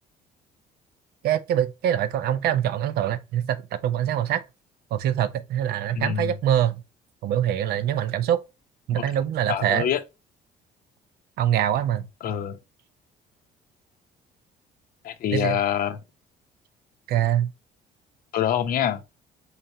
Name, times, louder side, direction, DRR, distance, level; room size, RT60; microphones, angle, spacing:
voice 1, 1.2-4.4 4.9-6.8 7.2-8.4 8.9-9.9 11.4-12.1 15.3-15.6 17.1-17.5, right 10 dB, 70° right, 0.5 m, -24 dB
voice 2, 6.0-6.3 8.9-9.0 9.5-10.0 12.2-12.6 15.0-16.0 18.3-19.0, left 9 dB, 60° left, 0.6 m, -25 dB
4.0 x 3.2 x 2.7 m
cardioid pair, 110°, 17 cm